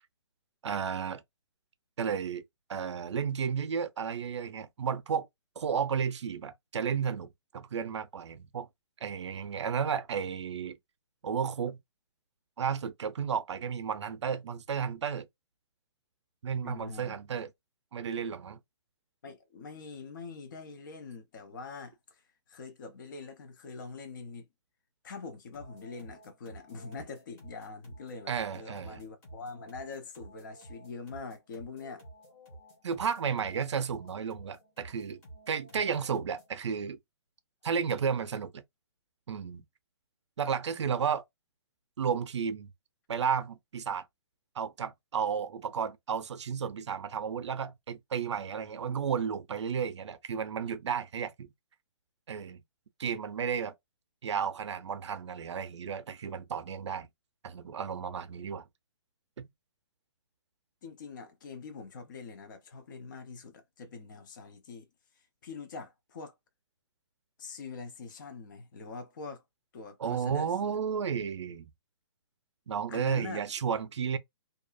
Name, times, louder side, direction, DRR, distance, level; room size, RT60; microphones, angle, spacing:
voice 1, 0.6-1.2 2.0-2.4 2.7-5.3 5.6-8.7 9.0-10.8 11.2-11.8 12.6-15.3 16.4-17.5 17.9-18.6 28.3-29.0 32.8-37.0 37.6-38.6 39.3-39.6 40.4-41.2 42.0-42.7 43.1-44.1 44.6-51.5 52.3-52.6 53.0-53.7 54.2-57.1 57.4-58.7 59.4-59.5 70.0-71.7 72.7-74.2, right 7 dB, 75° right, 0.5 m, -33 dB
voice 2, 16.6-17.2 19.2-22.2 22.5-24.5 25.0-32.0 60.8-64.9 65.2-66.3 67.4-69.4 69.7-70.8 72.9-73.5, left 4 dB, 45° left, 0.6 m, -44 dB
sound 1, 25.5-36.6, right 1 dB, 15° left, 1.0 m, -52 dB
2.7 x 2.4 x 2.3 m
hypercardioid pair, 170°, 15 cm